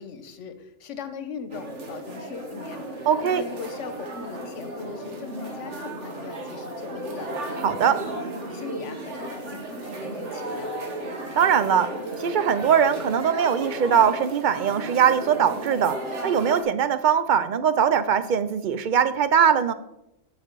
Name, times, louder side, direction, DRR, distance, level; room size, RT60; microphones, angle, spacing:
voice 1, 0.0-7.5 8.5-10.7, left 5 dB, 80° left, 9 dB, 1.2 m, -39 dB
sound 1, 1.5-16.6, right 1 dB, 75° right, 1.6 m, -34 dB
voice 2, 3.1-3.4 7.6-8.0 11.4-11.9 12.2-16.0 16.2-19.7, right 8 dB, 55° right, 12 dB, 0.5 m, -21 dB
9.1 x 6.0 x 4.5 m, 0.86 s
omnidirectional pair, 1.2 m